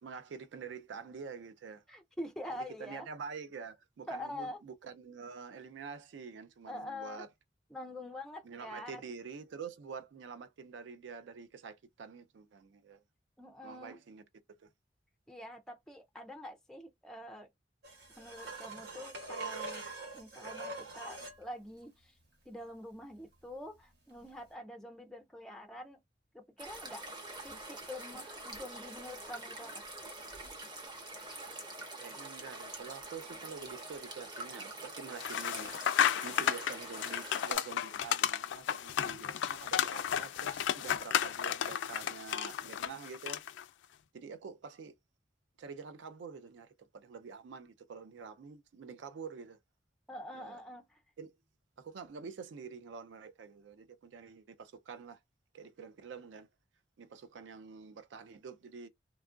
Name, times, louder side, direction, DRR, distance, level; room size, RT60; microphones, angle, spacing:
voice 1, 0.0-1.8 2.5-7.3 8.4-13.0 13.6-14.2 14.5-14.7 32.0-43.4 44.1-44.9 45.6-49.6 50.3-50.6 51.2-51.3 51.8-55.2 55.5-56.5 57.0-58.9, right 5 dB, 80° right, 0.4 m, -47 dB
voice 2, 1.9-3.1 4.1-4.6 6.7-7.3 7.7-9.0 13.4-14.0 15.3-17.5 18.2-19.9 20.1-22.1 22.5-26.0 26.3-27.1 27.4-29.8 50.1-51.0, left 1 dB, 5° left, 0.3 m, -45 dB
sound 1, 17.8-21.4 24.3-24.4, right 3 dB, 65° right, 1.1 m, -43 dB
sound 2, 26.6-37.6, right 2 dB, 25° right, 0.7 m, -45 dB
sound 3, 35.2-43.6, left 9 dB, 85° left, 0.3 m, -33 dB
2.8 x 2.3 x 2.4 m
head